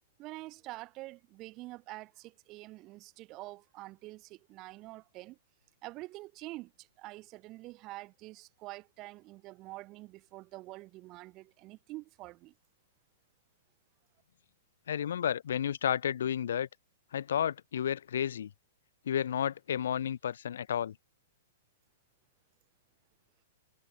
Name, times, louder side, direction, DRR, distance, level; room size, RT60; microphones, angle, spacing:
voice 1, 0.2-5.4 5.8-12.5, right 19 dB, 35° right, 0.4 m, -46 dB
voice 2, 14.9-16.7 17.1-18.5 19.1-20.9, left 9 dB, 75° left, 0.3 m, -31 dB
hypercardioid pair, 135°, 0 cm